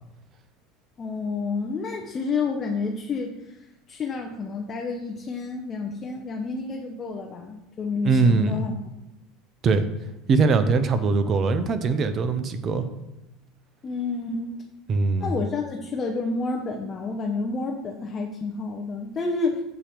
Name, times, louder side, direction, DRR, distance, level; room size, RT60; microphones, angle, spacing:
voice 1, 1.0-3.6 3.9-8.7 13.8-14.6 15.2-19.6, left 4 dB, 35° left, 1 dB, 0.7 m, -29 dB
voice 2, 8.0-8.6 9.6-9.9 10.3-12.8 14.9-15.4, right 4 dB, 40° right, 10 dB, 0.6 m, -21 dB
6.9 x 2.9 x 4.9 m, 0.95 s
hypercardioid pair, 80°, 0 cm